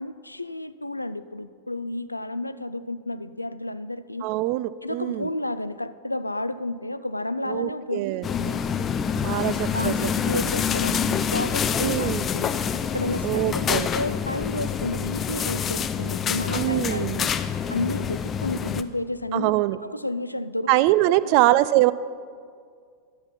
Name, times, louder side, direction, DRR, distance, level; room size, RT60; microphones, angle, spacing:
voice 1, 0.0-4.3 4.8-8.1 8.4-8.6 9.7-12.5 12.9-17.3 17.7-19.5 19.8-20.7 21.0-21.3, left 1 dB, 85° left, 14 dB, 0.3 m, -31 dB
voice 2, 4.2-5.3 7.5-8.2 9.2-9.9 10.3-10.4 11.8-12.2 13.2-13.9 16.6-17.3 19.3-19.8 20.7-21.9, right 17 dB, 45° right, 17 dB, 0.3 m, -23 dB
sound 1, 8.2-18.8, left 7 dB, 25° left, 0.4 m, -27 dB
11.0 x 7.3 x 5.7 m, 2.1 s
figure-of-eight pair, 90°, 0 cm